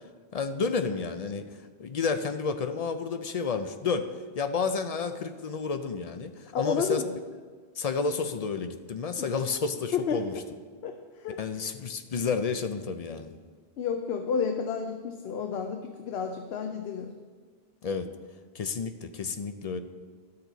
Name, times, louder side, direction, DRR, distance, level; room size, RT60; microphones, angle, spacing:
voice 1, 0.3-1.5 1.8-4.1 4.4-7.0 7.8-10.3 11.4-13.3 17.8-18.1 18.5-19.8, left 5 dB, 50° left, 8 dB, 0.5 m, -30 dB
voice 2, 6.5-7.1 9.2-9.3 9.9-10.3 10.8-11.0 11.2-11.7 13.8-17.1, left 6 dB, 80° left, 5 dB, 0.9 m, -31 dB
12.0 x 6.7 x 4.0 m, 1.5 s
omnidirectional pair, 1.0 m